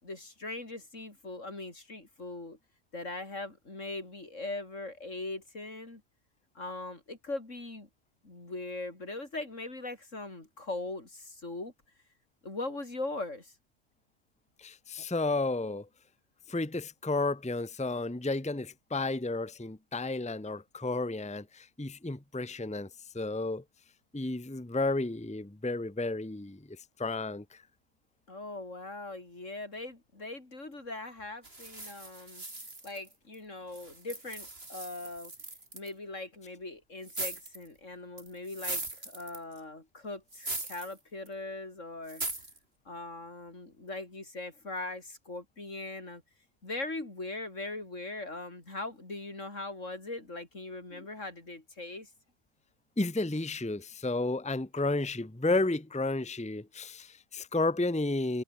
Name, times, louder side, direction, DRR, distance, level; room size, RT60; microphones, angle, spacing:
voice 1, 0.0-2.6 2.9-6.0 6.5-7.9 8.2-11.7 12.4-13.5 28.3-32.4 32.8-35.3 35.7-42.2 42.8-46.2 46.6-52.1, left 2 dB, 80° left, 5.1 m, -40 dB
voice 2, 14.6-15.9 16.5-22.9 23.1-23.6 24.1-27.6 51.0-51.1 53.0-58.4, left 2 dB, 5° left, 1.1 m, -32 dB
sound 1, 31.4-33.4 33.7-35.9 37.0-37.7 38.2-39.6 40.3-40.9 41.3-41.4 42.1-42.6, right 2 dB, 50° right, 4.6 m, -40 dB
omnidirectional pair, 1.3 m